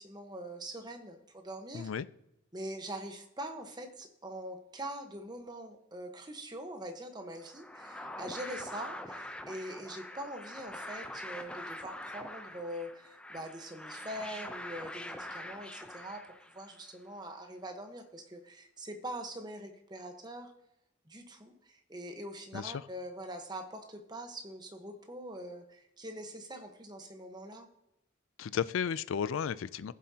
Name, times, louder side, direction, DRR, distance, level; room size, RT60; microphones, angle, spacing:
voice 1, 0.0-1.9 2.5-16.3 16.5-20.5 21.1-27.7, right 1 dB, 20° right, 5 dB, 1.1 m, -43 dB
voice 2, 1.7-2.1 22.5-22.8 28.4-29.9, left 7 dB, 90° left, 17 dB, 0.4 m, -33 dB
sound 1, 7.4-16.8, left 1 dB, 5° left, 0.6 m, -44 dB
15.5 x 7.4 x 2.8 m, 0.82 s
head